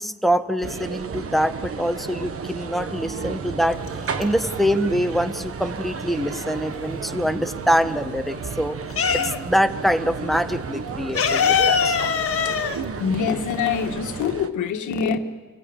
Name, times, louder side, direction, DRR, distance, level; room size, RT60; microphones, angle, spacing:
voice 1, 0.0-8.8 9.1-12.2, equal, ahead, 1.3 m, -24 dB
sound 1, 0.6-14.5, right 6 dB, 50° right, 1.5 m, -33 dB
sound 2, 3.8-4.7 5.0-6.9 7.3-9.7 10.0-10.1 10.4-14.0, left 7 dB, 50° left, 1.6 m, -23 dB
voice 2, 13.0-15.2, left 6 dB, 75° left, 1.6 m, -24 dB
28.0 x 15.5 x 8.8 m
cardioid pair, 90°, 30 cm